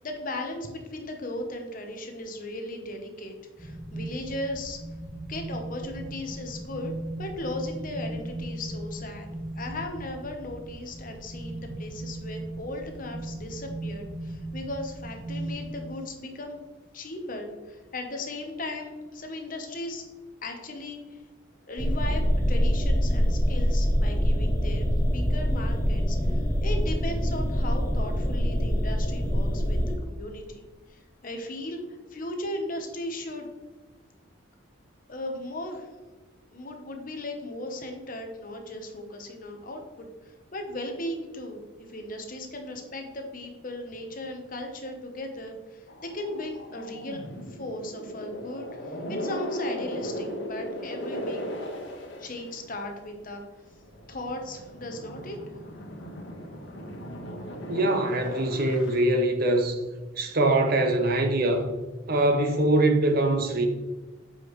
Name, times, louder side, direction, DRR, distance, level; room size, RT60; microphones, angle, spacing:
voice 1, 0.0-4.8 5.3-6.9 7.2-9.3 9.5-16.6 16.9-20.0 20.4-21.2 21.7-33.5 35.1-35.9 36.5-41.6 41.9-47.2 47.5-51.7 52.2-53.4 54.1-55.4, left 1 dB, 40° left, 0.9 m, -37 dB
sound 1, 3.6-15.7, right 1 dB, 20° right, 1.2 m, -37 dB
sound 2, 21.8-29.9, equal, 15° left, 0.6 m, -24 dB
sound 3, 45.9-53.1 53.7-59.0, equal, 55° left, 1.4 m, -37 dB
voice 2, 57.7-59.8 60.2-61.7 62.1-63.7, right 1 dB, 45° right, 0.7 m, -23 dB
7.5 x 4.9 x 3.1 m
head